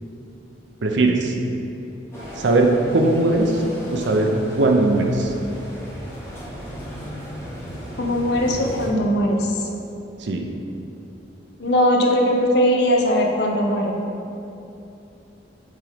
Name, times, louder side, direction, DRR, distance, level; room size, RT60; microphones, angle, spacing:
voice 1, 0.8-1.3 2.4-3.6 3.9-5.3 10.2-10.4, right 2 dB, 65° right, 2 dB, 0.6 m, -19 dB
sound 1, 2.1-8.9, equal, 15° left, 1.0 m, -36 dB
voice 2, 8.0-9.6 11.6-14.0, equal, 60° left, 1 dB, 0.7 m, -20 dB
7.6 x 3.7 x 3.5 m, 2.8 s
head